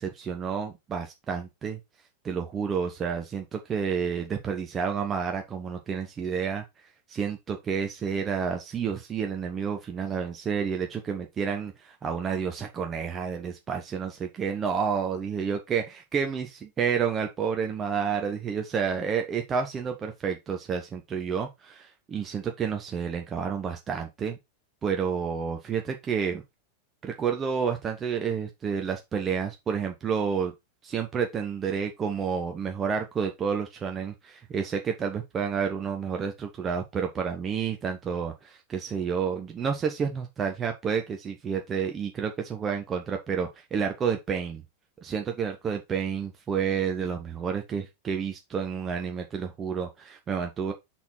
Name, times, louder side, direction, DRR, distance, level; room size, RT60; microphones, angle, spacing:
voice 1, 0.0-1.8 2.2-6.6 7.1-15.8 16.1-24.4 24.8-26.4 27.0-30.5 30.8-44.6 45.0-50.7, right 6 dB, 25° right, 1.0 m, -30 dB
5.9 x 4.1 x 4.2 m
figure-of-eight pair, 90°, 0 cm